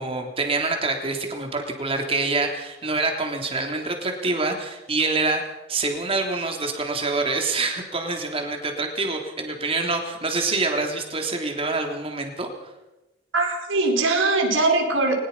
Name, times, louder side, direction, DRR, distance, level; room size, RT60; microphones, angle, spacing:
voice 1, 0.0-5.4 5.7-12.5, right 3 dB, 30° right, 3 dB, 3.3 m, -26 dB
voice 2, 13.3-15.1, right 3 dB, 90° right, 2 dB, 4.7 m, -21 dB
22.5 x 20.5 x 5.7 m, 1.0 s
head